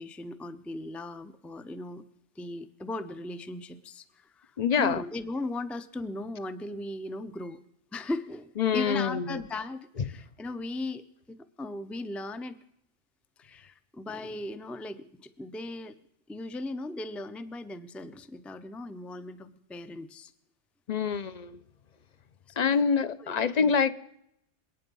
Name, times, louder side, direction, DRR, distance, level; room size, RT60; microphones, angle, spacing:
voice 1, 0.0-2.0 2.4-7.6 7.9-12.6 13.4-15.9 16.3-20.3 22.5-22.9 23.2-23.7, left 2 dB, ahead, 0.5 m, -38 dB
voice 2, 4.6-5.0 8.6-9.4 20.9-21.6 22.6-23.9, left 6 dB, 45° left, 0.7 m, -26 dB
27.5 x 9.1 x 5.4 m
omnidirectional pair, 1.2 m